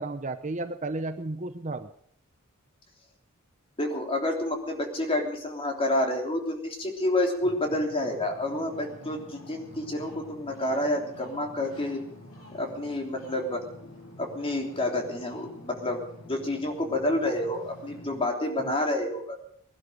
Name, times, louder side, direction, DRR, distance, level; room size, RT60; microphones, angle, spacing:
voice 1, 0.0-1.9 18.6-18.7, right 2 dB, 35° right, 9 dB, 0.8 m, -33 dB
voice 2, 3.8-12.0 12.5-13.6 14.2-19.4, left 1 dB, 25° left, 2 dB, 3.3 m, -29 dB
Ocean, 7.4-18.2, left 1 dB, 70° left, 7.7 m, -48 dB
20.5 x 11.5 x 5.2 m, 0.67 s
head